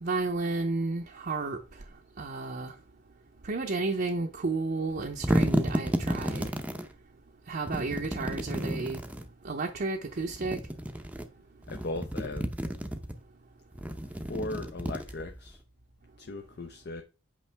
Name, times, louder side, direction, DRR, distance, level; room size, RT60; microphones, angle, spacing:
voice 1, 0.0-1.6 2.2-2.7 3.4-6.5 7.5-9.0 9.4-10.6, right 3 dB, 50° right, 0.7 m, -32 dB
sound 1, 4.9-6.9 7.7-9.3 10.2-11.3 11.6-13.1 13.7-15.5, equal, 5° right, 0.6 m, -31 dB
voice 2, 11.7-12.5 14.3-15.6 16.2-17.0, left 2 dB, 55° left, 0.7 m, -37 dB
8.4 x 5.3 x 3.4 m
head